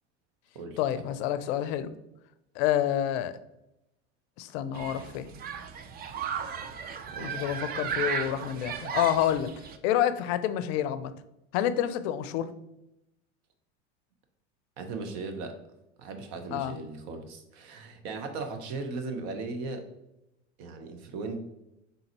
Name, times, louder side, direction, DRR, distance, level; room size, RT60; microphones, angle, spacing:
voice 1, 0.8-1.9 2.6-3.3 4.4-5.3 7.2-9.5 9.8-11.1 11.5-12.5 16.5-16.8, left 11 dB, 60° left, 13 dB, 0.5 m, -28 dB
Human group actions, 4.7-9.8, right 7 dB, 25° right, 0.4 m, -35 dB
voice 2, 7.1-7.5 14.8-15.6 16.0-19.9 20.6-21.4, right 3 dB, 60° right, 6 dB, 0.9 m, -37 dB
3.9 x 3.8 x 2.9 m, 0.88 s
hypercardioid pair, 85°, 36 cm